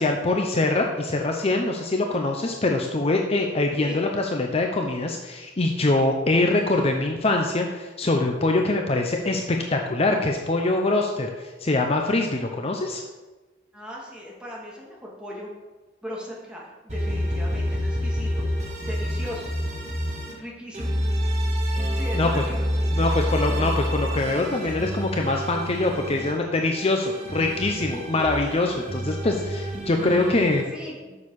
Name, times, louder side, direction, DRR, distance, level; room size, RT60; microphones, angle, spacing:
voice 1, 0.0-13.0 22.1-22.3 22.9-30.6, left 2 dB, 35° left, 2 dB, 0.7 m, -24 dB
voice 2, 13.7-15.5 16.0-18.4 18.8-19.5 20.3-20.9 22.0-23.3 30.2-30.4 30.7-31.2, equal, 5° right, -4 dB, 2.3 m, -38 dB
sound 1, 16.9-20.3 20.7-26.3 26.7-30.6, equal, 40° right, 2.0 m, -28 dB
7.3 x 6.5 x 6.4 m, 1.2 s
head